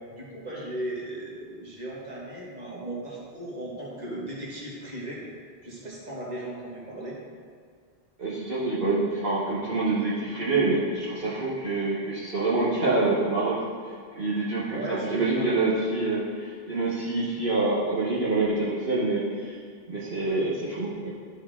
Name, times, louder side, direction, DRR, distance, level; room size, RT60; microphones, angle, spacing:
voice 1, 0.1-5.2 5.6-7.2 14.7-15.5, right 1 dB, 45° right, -6 dB, 2.0 m, -36 dB
voice 2, 8.2-13.6 14.1-19.6 19.9-21.1, right 3 dB, 60° right, -9 dB, 1.4 m, -26 dB
12.0 x 4.5 x 3.8 m, 2.1 s
omnidirectional pair, 1.0 m